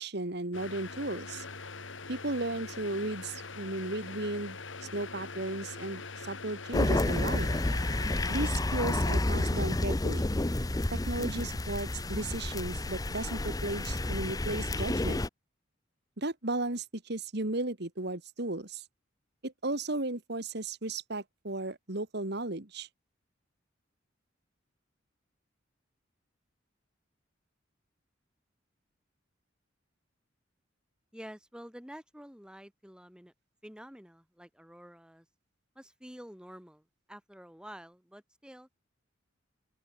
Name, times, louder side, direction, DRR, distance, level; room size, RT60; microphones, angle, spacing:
voice 1, 0.0-1.4 2.1-4.6 4.9-7.5 8.3-10.3 11.1-15.2 16.2-18.8 19.4-22.9, right 2 dB, 55° right, 2.3 m, -35 dB
sound 1, 0.5-8.5, left 4 dB, 80° left, 3.2 m, -43 dB
sound 2, 6.7-15.3, left 2 dB, 20° left, 0.7 m, -30 dB
voice 2, 31.1-33.3 33.6-35.3 35.8-36.8 37.1-38.7, equal, 5° right, 3.9 m, -49 dB
open air
head